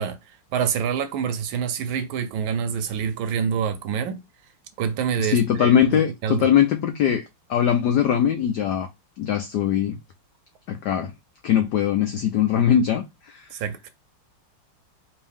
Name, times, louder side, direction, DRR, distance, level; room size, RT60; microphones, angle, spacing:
voice 1, 0.0-4.2 4.8-6.5 13.5-13.9, right 7 dB, 75° right, 1.3 m, -27 dB
voice 2, 5.2-7.2 7.5-8.9 9.2-10.0 10.7-11.1 11.4-13.5, left 9 dB, 85° left, 0.9 m, -21 dB
4.6 x 2.7 x 3.5 m
omnidirectional pair, 2.4 m